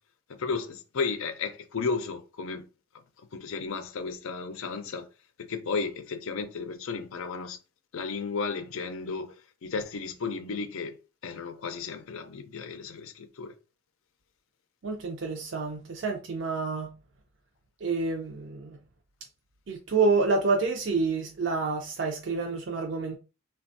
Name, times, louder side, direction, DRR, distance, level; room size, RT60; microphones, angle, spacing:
voice 1, 0.3-2.7 3.3-5.1 5.4-7.6 7.9-9.4 9.6-10.9 11.2-13.5, left 4 dB, 80° left, 0.5 m, -33 dB
voice 2, 14.8-16.9 17.8-18.8 19.7-23.2, right 4 dB, 60° right, 0.5 m, -28 dB
3.3 x 2.2 x 2.6 m
head